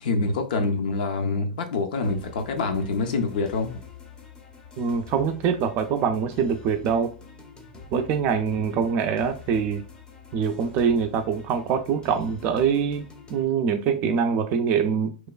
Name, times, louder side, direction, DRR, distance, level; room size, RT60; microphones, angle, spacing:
voice 1, 0.0-3.8, left 3 dB, 65° left, 0.6 m, -26 dB
sound 1, 2.0-13.4, left 5 dB, 15° left, 0.6 m, -46 dB
voice 2, 4.8-7.1 7.9-9.8 10.3-15.3, right 6 dB, 40° right, 0.4 m, -24 dB
3.0 x 2.2 x 2.3 m
hypercardioid pair, 120°, 5 cm